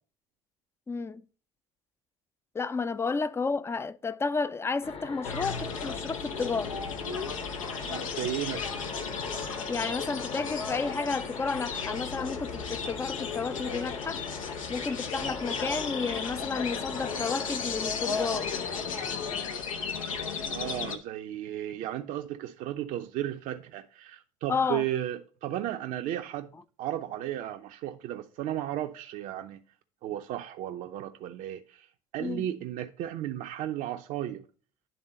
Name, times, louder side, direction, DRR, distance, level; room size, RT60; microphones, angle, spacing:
voice 1, 0.9-1.2 2.5-6.8 9.7-14.2 14.7-18.5 24.5-24.8 32.2-32.4, left 4 dB, 15° left, 0.4 m, -32 dB
sound 1, 4.8-19.4, left 4 dB, 35° left, 1.0 m, -41 dB
sound 2, 5.2-21.0, left 5 dB, 85° left, 0.7 m, -35 dB
voice 2, 7.8-8.7 20.5-26.5 26.8-29.6 30.0-31.9 32.1-34.4, right 12 dB, 55° right, 0.6 m, -34 dB
10.5 x 3.6 x 3.9 m
hypercardioid pair, 60°, 17 cm